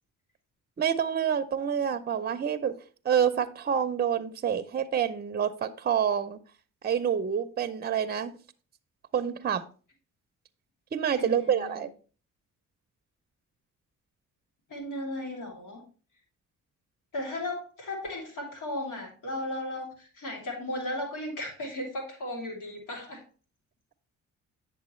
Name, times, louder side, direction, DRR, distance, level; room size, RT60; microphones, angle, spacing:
voice 1, 0.8-2.7 3.0-6.4 6.8-8.4 9.1-9.6 10.9-11.9, right 8 dB, 30° right, 10 dB, 0.6 m, -27 dB
voice 2, 11.2-11.9 14.7-15.8 17.1-23.2, left 1 dB, 75° left, 0 dB, 3.0 m, -36 dB
8.4 x 6.8 x 3.1 m, 0.38 s
cardioid pair, 95°, 32 cm